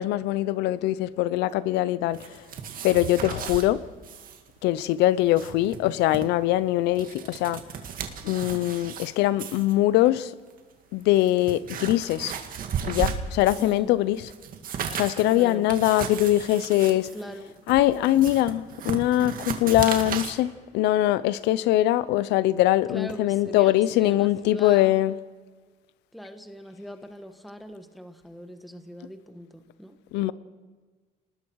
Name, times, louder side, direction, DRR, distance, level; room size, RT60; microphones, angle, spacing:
voice 1, 0.0-2.2 2.8-3.8 4.6-7.6 8.2-10.3 10.9-12.3 12.9-14.2 14.9-17.1 17.7-25.2 30.1-30.3, left 14 dB, 90° left, 0.7 m, -22 dB
sound 1, 2.1-3.7 4.0-4.4 4.7-4.8 5.2-6.3 6.8-9.1 9.4-9.7 10.5-10.6 11.1-13.8 14.1-20.3, right 7 dB, 55° right, 2.0 m, -35 dB
voice 2, 13.6-14.0 15.3-15.7 17.1-17.6 22.9-25.0 26.1-30.3, equal, ahead, 1.4 m, -41 dB
29.0 x 20.0 x 4.8 m
cardioid pair, 110°, 17 cm